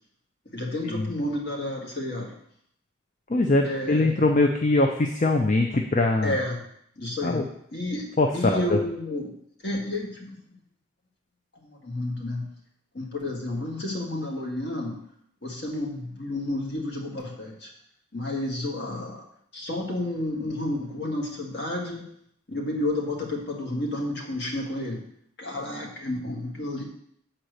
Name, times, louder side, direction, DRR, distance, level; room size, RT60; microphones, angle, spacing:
voice 1, 0.5-2.3 3.6-4.1 6.2-6.6 7.0-7.4 7.7-8.1 8.3-9.3 9.6-10.4 11.6-12.5 12.9-15.0 15.4-17.7 18.1-19.2 19.5-22.0 22.5-25.0 25.4-26.8, left 1 dB, 55° left, 0 dB, 1.8 m, -31 dB
voice 2, 3.3-6.4 7.2-7.4 8.2-8.8, left 2 dB, 35° left, 3 dB, 0.5 m, -22 dB
7.9 x 4.3 x 6.5 m, 0.70 s
head